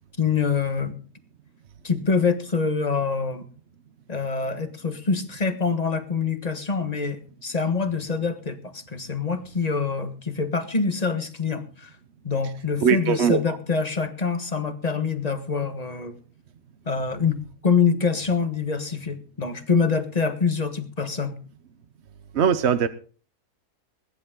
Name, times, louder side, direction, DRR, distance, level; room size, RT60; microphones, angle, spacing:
voice 1, 0.2-0.9 1.8-3.5 4.1-11.9 12.2-16.1 16.8-21.4, left 5 dB, 25° left, 9 dB, 1.4 m, -25 dB
voice 2, 12.8-13.6 22.3-22.9, right 7 dB, 50° right, 10 dB, 1.0 m, -20 dB
20.5 x 10.5 x 3.8 m, 0.40 s
omnidirectional pair, 1.7 m